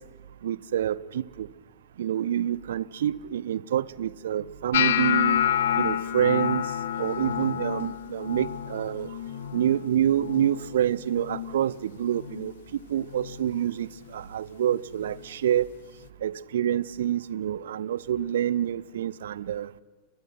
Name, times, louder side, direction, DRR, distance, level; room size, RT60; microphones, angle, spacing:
voice 1, 0.4-1.5 2.0-5.4 5.8-6.6 7.0-9.1 9.5-12.5 12.9-15.7 16.2-19.7, right 10 dB, 60° right, 0.7 m, -27 dB
sound 1, 4.7-10.8 11.1-11.6 12.0-12.5 13.1-13.3 15.1-15.2, left 10 dB, 60° left, 1.0 m, -28 dB
30.0 x 23.5 x 6.0 m
figure-of-eight pair, 90°, 0 cm